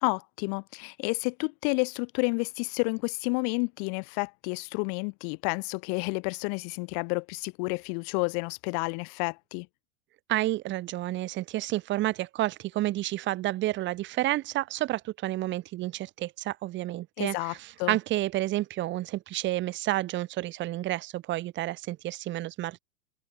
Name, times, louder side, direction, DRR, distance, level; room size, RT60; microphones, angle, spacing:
voice 1, 0.0-9.7 17.2-17.5 17.8-18.0, left 40 dB or more, 50° left, 2.2 m, -30 dB
voice 2, 10.3-22.8, right 15 dB, 35° right, 2.9 m, -30 dB
hypercardioid pair, 120°, 32 cm